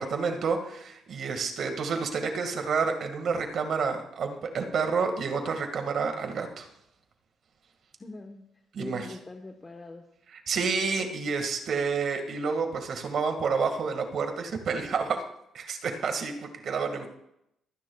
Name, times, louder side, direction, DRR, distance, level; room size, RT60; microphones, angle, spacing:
voice 1, 0.0-6.7 8.7-9.0 10.5-15.2 15.5-17.1, right 5 dB, 60° right, 5 dB, 1.9 m, -29 dB
voice 2, 8.0-8.4 8.8-10.0 16.8-17.1, left 2 dB, 25° left, 3 dB, 1.2 m, -42 dB
23.5 x 10.0 x 2.4 m, 0.79 s
cardioid pair, 90°, 0 cm